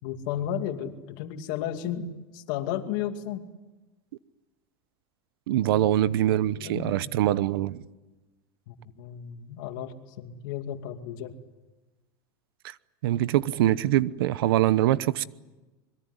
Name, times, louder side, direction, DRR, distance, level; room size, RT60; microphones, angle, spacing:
voice 1, 0.0-3.5 5.6-6.0 6.3-7.0 8.7-11.3, left 9 dB, 65° left, 2.5 m, -34 dB
voice 2, 5.5-7.8 12.6-12.7 13.0-15.2, right 13 dB, 85° right, 0.9 m, -24 dB
25.0 x 22.5 x 9.8 m
supercardioid pair, 145°, 12 cm